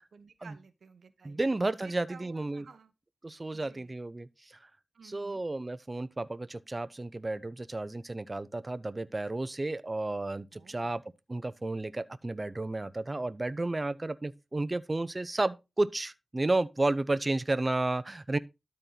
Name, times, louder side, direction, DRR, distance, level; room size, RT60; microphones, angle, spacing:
voice 1, 0.0-1.4 1.8-2.9 3.5-3.9 4.9-5.4 10.5-11.0, right 5 dB, 80° right, 1.0 m, -54 dB
voice 2, 1.2-2.6 3.2-4.6 5.0-11.0 11.3-18.4, right 2 dB, 30° right, 0.7 m, -32 dB
12.5 x 4.4 x 3.9 m
cardioid pair, 60°, 0 cm